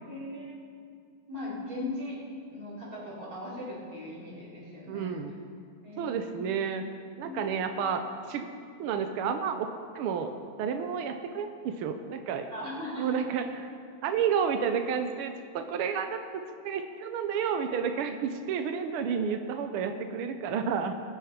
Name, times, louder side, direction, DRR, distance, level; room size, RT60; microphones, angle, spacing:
voice 1, 0.0-0.6 1.3-2.2 2.5-5.2 5.8-6.4 7.2-7.5 12.5-13.2, left 1 dB, 30° right, -7 dB, 4.5 m, -39 dB
voice 2, 4.9-5.3 6.0-6.8 7.2-8.0 8.3-8.5 8.8-9.7 9.9-10.3 10.6-12.5 13.0-13.7 14.0-16.2 16.6-20.9, right 7 dB, 85° right, 6 dB, 1.2 m, -30 dB
20.5 x 8.8 x 5.1 m, 2.4 s
omnidirectional pair, 3.3 m